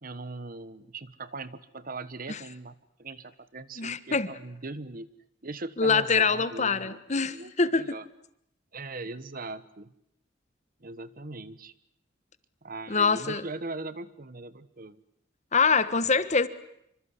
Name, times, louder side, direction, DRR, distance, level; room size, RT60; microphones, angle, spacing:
voice 1, 0.0-5.1 5.4-8.1 8.7-9.9 10.8-11.7 12.6-15.0, right 3 dB, 45° right, 15 dB, 1.3 m, -40 dB
voice 2, 3.8-4.3 5.8-7.9 12.9-13.4 15.5-16.5, left 4 dB, 35° left, 14 dB, 1.3 m, -24 dB
27.5 x 25.0 x 8.3 m, 0.74 s
head